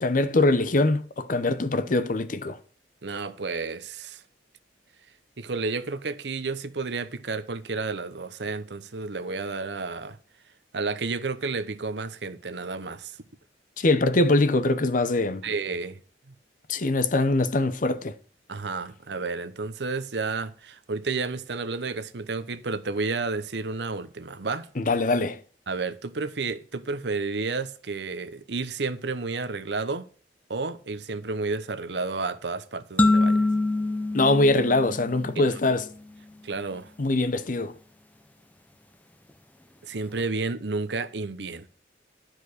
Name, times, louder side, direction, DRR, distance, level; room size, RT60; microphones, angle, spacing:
voice 1, 0.0-2.6 13.8-15.4 16.7-18.1 24.8-25.4 34.1-35.8 37.0-37.7, left 2 dB, 50° left, 0.7 m, -23 dB
voice 2, 3.0-4.2 5.4-10.2 10.7-13.2 15.4-16.0 18.5-24.7 25.7-30.1 30.5-33.5 35.4-35.5 36.4-36.9 39.8-41.7, right 4 dB, 75° right, 0.8 m, -31 dB
sound 1, 33.0-35.6, left 2 dB, 10° left, 0.6 m, -24 dB
10.5 x 4.9 x 6.4 m
head